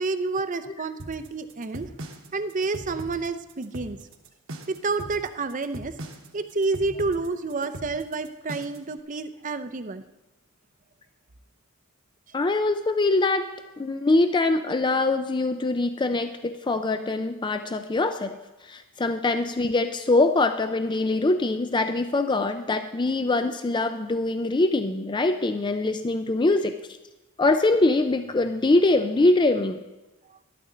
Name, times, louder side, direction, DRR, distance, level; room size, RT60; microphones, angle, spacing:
voice 1, 0.0-1.9 2.3-4.0 4.7-5.9 6.3-10.0, right 3 dB, 35° right, 10 dB, 0.6 m, -29 dB
sound 1, 1.0-8.9, right 1 dB, 65° right, 1.2 m, -40 dB
voice 2, 12.3-13.4 13.8-18.4 18.6-26.8 27.4-29.8, left 2 dB, 20° left, 8 dB, 0.4 m, -23 dB
13.0 x 11.5 x 3.9 m, 1.1 s
head